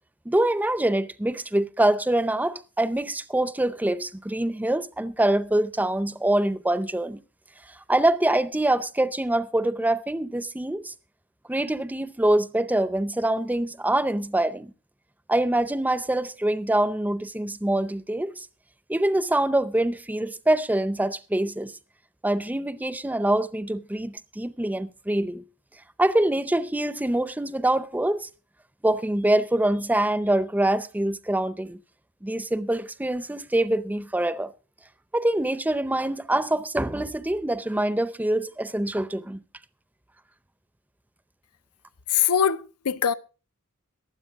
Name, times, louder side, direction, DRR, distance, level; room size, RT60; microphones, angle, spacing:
voice 1, 0.3-7.2 7.9-10.9 11.5-14.7 15.3-18.5 18.9-21.7 22.2-25.4 26.0-28.3 28.8-31.8 32.2-34.5 35.1-39.4, right 1 dB, 5° right, 0.5 m, -24 dB
voice 2, 42.1-43.1, left 8 dB, 90° left, 0.6 m, -22 dB
22.5 x 7.8 x 3.5 m
head